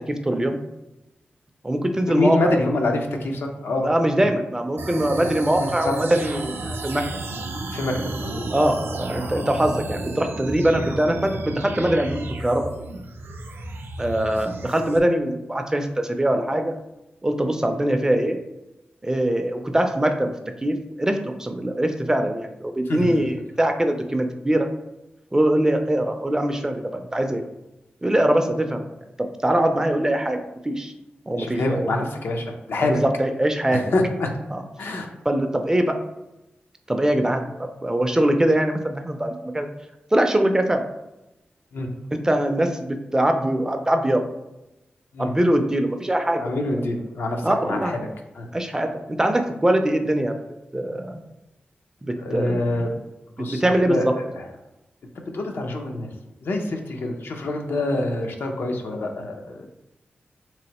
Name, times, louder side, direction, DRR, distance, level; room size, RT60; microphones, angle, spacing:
voice 1, 0.1-0.6 1.6-2.5 3.8-7.0 8.5-12.6 14.0-16.7 17.2-18.4 19.0-20.3 20.6-24.7 25.3-27.4 28.0-28.8 29.2-30.9 31.3-31.9 32.8-33.8 34.5-34.6 35.3-36.0 36.9-37.4 37.8-39.7 40.1-40.8 42.1-44.2 45.2-46.5 47.4-48.0 48.5-50.4 50.7-51.2 52.0-52.6 53.4-54.0, right 1 dB, 15° right, 5 dB, 0.3 m, -22 dB
voice 2, 2.1-3.9 4.2-4.3 5.1-5.3 5.6-6.0 7.7-8.5 10.7-10.8 22.9-23.3 31.3-33.0 33.7-34.3 34.8-35.1 41.7-41.9 45.1-45.3 46.4-48.1 48.3-48.5 52.2-52.9 53.4-54.5 55.3-56.1 56.4-59.7, left 2 dB, 80° left, 3 dB, 0.5 m, -26 dB
sound 1, 4.8-15.0, right 2 dB, 90° right, 0.4 m, -33 dB
3.5 x 3.0 x 2.9 m, 0.95 s
wide cardioid pair, 100°, 4 cm